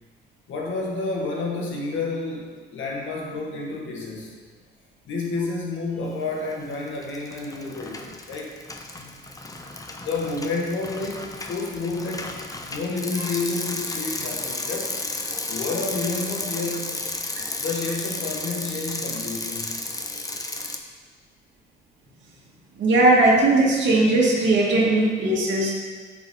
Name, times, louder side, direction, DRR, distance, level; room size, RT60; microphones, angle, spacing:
voice 1, 0.5-4.3 5.0-8.5 9.0-9.1 9.9-12.3 12.7-14.9 15.5-17.0 17.5-19.8, left 3 dB, 75° left, -1 dB, 1.9 m, -30 dB
Bicycle, 6.4-6.7 7.0-20.8, left 2 dB, 15° left, 0.9 m, -33 dB
voice 2, 22.8-25.7, right 2 dB, 70° right, -5 dB, 2.1 m, -18 dB
9.1 x 7.1 x 3.9 m, 1.5 s
cardioid pair, 90°, 20 cm